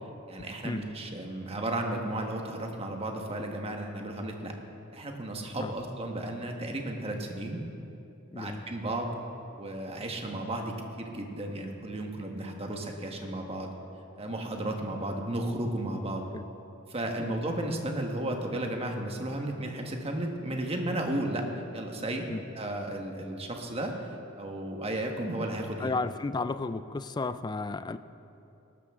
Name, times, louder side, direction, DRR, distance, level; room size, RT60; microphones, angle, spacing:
voice 1, 0.3-4.5 4.9-7.6 8.4-9.1 9.6-13.7 14.2-16.3 16.9-21.5 21.7-22.3 22.5-23.9 24.4-25.9, right 1 dB, 30° right, 2 dB, 1.4 m, -34 dB
voice 2, 8.3-8.7 16.3-16.5 17.2-17.3 22.3-22.4 25.8-28.0, left 3 dB, 20° left, 12 dB, 0.3 m, -33 dB
18.5 x 13.0 x 3.7 m, 2.8 s
head